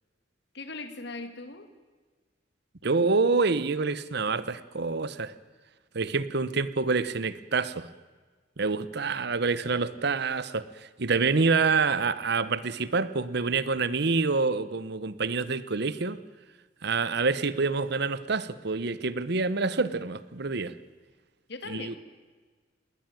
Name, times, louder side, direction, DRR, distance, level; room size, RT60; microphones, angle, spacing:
voice 1, 0.5-1.7 21.5-22.0, left 3 dB, 65° left, 9 dB, 2.2 m, -39 dB
voice 2, 2.8-5.3 5.9-7.9 8.6-16.2 16.8-20.7 21.7-21.9, right 4 dB, 60° right, 16 dB, 1.0 m, -27 dB
20.0 x 18.5 x 9.0 m, 1.4 s
head